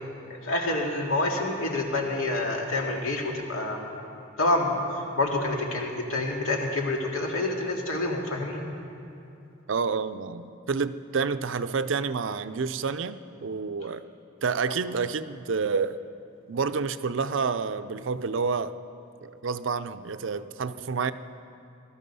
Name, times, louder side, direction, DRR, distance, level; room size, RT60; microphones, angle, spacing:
voice 1, 0.3-3.9 4.4-8.6, left 2 dB, 90° left, 0 dB, 2.2 m, -27 dB
voice 2, 9.7-14.0 14.4-16.0 16.5-18.8 19.2-21.1, right 5 dB, 65° right, 12 dB, 0.5 m, -29 dB
20.0 x 13.0 x 5.5 m, 2.7 s
head